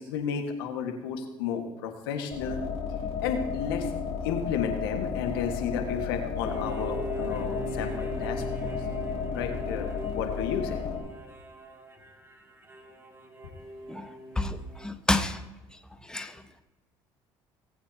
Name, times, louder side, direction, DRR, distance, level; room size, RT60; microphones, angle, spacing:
voice 1, 0.0-2.6 3.2-3.9 4.2-8.7 9.3-10.8, left 7 dB, 80° left, 4 dB, 1.6 m, -32 dB
sound 1, 2.3-11.0, left 6 dB, 60° left, 3.7 m, -33 dB
sound 2, 6.4-14.9, right 1 dB, 20° right, 2.3 m, -40 dB
voice 2, 13.9-15.4 16.1-16.4, left 2 dB, 5° left, 8 dB, 1.2 m, -30 dB
18.5 x 8.9 x 2.8 m, 1.0 s
hypercardioid pair, 60°, 12 cm